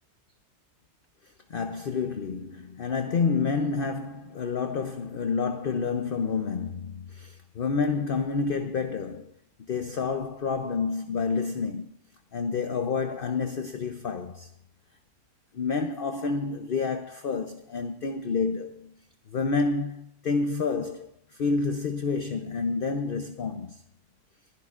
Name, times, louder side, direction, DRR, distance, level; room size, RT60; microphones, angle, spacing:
voice 1, 1.5-9.3 9.7-12.0 12.3-14.5 15.5-18.9 19.3-23.8, left 4 dB, 50° left, 0.7 m, -29 dB
27.5 x 10.5 x 2.5 m
omnidirectional pair, 1.7 m